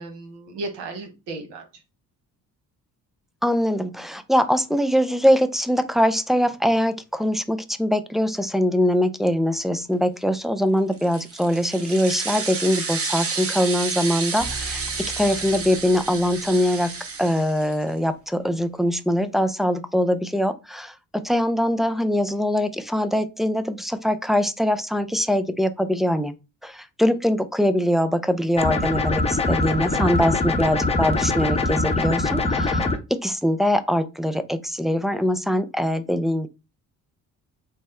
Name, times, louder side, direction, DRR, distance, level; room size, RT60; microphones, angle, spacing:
voice 1, 0.0-1.6 29.9-30.4, right 2 dB, 75° right, 1.1 m, -35 dB
voice 2, 3.4-14.8 15.2-16.9 17.2-26.3 26.6-36.5, equal, ahead, 0.4 m, -22 dB
sound 1, 10.9-17.9, right 4 dB, 35° right, 1.1 m, -31 dB
sound 2, 14.4-18.5, right 2 dB, 55° right, 1.3 m, -42 dB
sound 3, 28.6-33.0, left 3 dB, 15° left, 0.8 m, -23 dB
3.4 x 2.0 x 4.3 m
supercardioid pair, 65°, 41 cm